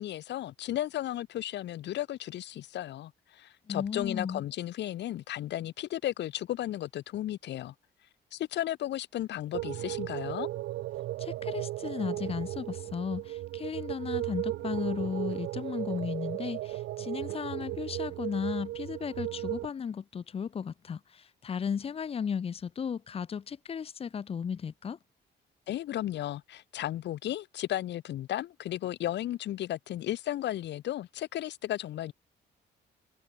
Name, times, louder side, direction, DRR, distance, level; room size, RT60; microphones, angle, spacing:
voice 1, 0.0-7.7 8.3-10.5 25.7-32.1, left 13 dB, 70° left, 6.5 m, -34 dB
voice 2, 3.7-4.4 11.2-25.0, left 7 dB, 30° left, 2.6 m, -35 dB
sound 1, 9.5-19.7, right 15 dB, 75° right, 0.9 m, -35 dB
cardioid pair, 180°, 18 cm